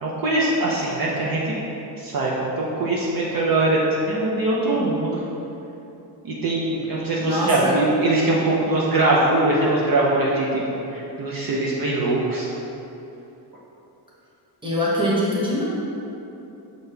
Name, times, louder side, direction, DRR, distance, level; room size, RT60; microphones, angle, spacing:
voice 1, 0.0-1.6 2.0-5.2 6.2-10.6 10.9-12.5, right 2 dB, 50° right, -5 dB, 0.8 m, -22 dB
voice 2, 7.2-7.7 14.6-15.6, equal, 10° right, -7 dB, 1.3 m, -23 dB
6.5 x 4.2 x 3.4 m, 2.9 s
cardioid pair, 140°, 43 cm